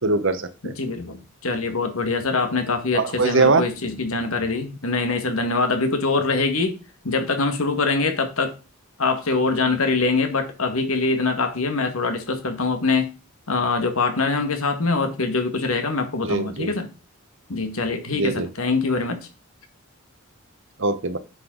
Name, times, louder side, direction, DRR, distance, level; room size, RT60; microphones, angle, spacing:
voice 1, 0.0-0.7 2.9-3.6 16.2-16.7 18.1-18.5 20.8-21.2, right 3 dB, 55° right, 0.9 m, -21 dB
voice 2, 0.6-6.7 7.0-8.5 9.0-13.1 13.5-16.9 17.5-19.2, left 3 dB, 75° left, 1.8 m, -23 dB
9.7 x 6.7 x 3.9 m
head